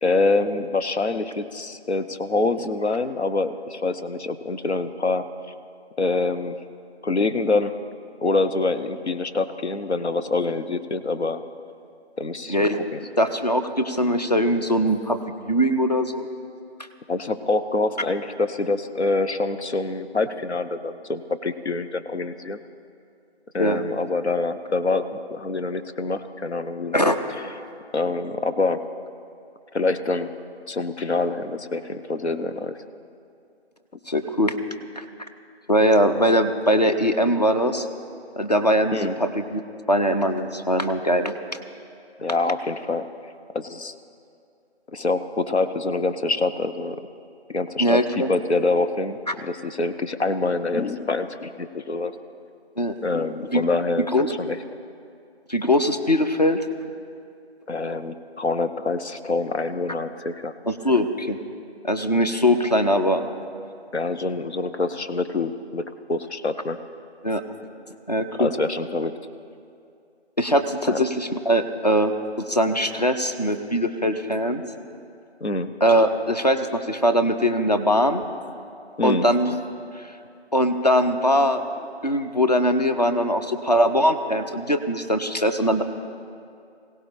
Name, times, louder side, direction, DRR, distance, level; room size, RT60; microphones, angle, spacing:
voice 1, 0.0-5.2 6.0-6.6 7.0-7.8 8.2-11.4 12.2-13.0 17.1-22.6 23.5-27.1 27.9-28.8 29.7-30.3 30.7-32.8 38.9-39.2 42.2-43.1 43.5-43.9 44.9-47.1 47.5-52.1 53.0-54.1 54.4-54.6 57.7-60.5 63.9-66.8 68.4-69.1 70.9-71.0 75.4-75.7 79.0-79.3, left 3 dB, 75° left, 10 dB, 1.0 m, -25 dB
voice 2, 12.5-12.8 13.2-16.3 23.6-23.8 26.9-27.2 34.1-34.6 35.0-35.1 35.7-37.9 38.4-39.6 39.9-41.3 47.8-48.3 52.8-52.9 53.5-53.6 54.1-54.3 55.5-56.7 60.7-61.4 61.8-63.3 67.2-67.4 68.1-68.5 70.4-72.1 72.4-74.6 75.8-78.2 79.0-79.6 80.0-80.1 80.5-85.8, equal, 40° left, 7 dB, 0.7 m, -21 dB
20.5 x 17.0 x 3.4 m, 2.4 s
figure-of-eight pair, 175°, 33 cm